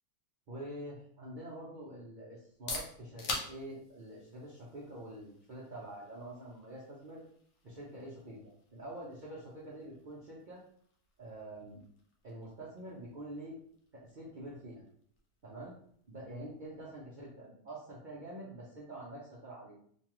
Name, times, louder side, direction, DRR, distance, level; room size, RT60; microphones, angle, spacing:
voice 1, 0.5-7.2 7.6-10.6 11.2-11.8 12.2-13.6 13.9-14.8 15.4-15.8 16.1-19.7, right 1 dB, 60° right, -6 dB, 0.5 m, -46 dB
sound 1, 2.4-18.0, left 3 dB, 80° left, 1.2 m, -49 dB
3.2 x 2.2 x 2.9 m, 0.63 s
omnidirectional pair, 1.6 m